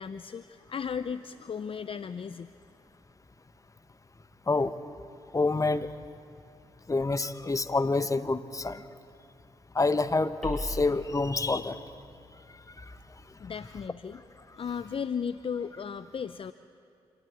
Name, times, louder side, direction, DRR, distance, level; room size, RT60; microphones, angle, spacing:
voice 1, 0.0-2.5 13.4-14.2 14.6-16.5, left 6 dB, 45° left, 12 dB, 0.5 m, -35 dB
voice 2, 5.3-5.9 6.9-8.8 9.7-11.8, left 3 dB, 25° left, 11 dB, 1.1 m, -27 dB
sound 1, 10.4-15.3, equal, 5° left, 7.6 m, -44 dB
27.0 x 13.0 x 8.4 m, 2.5 s
supercardioid pair, 50°, 12 cm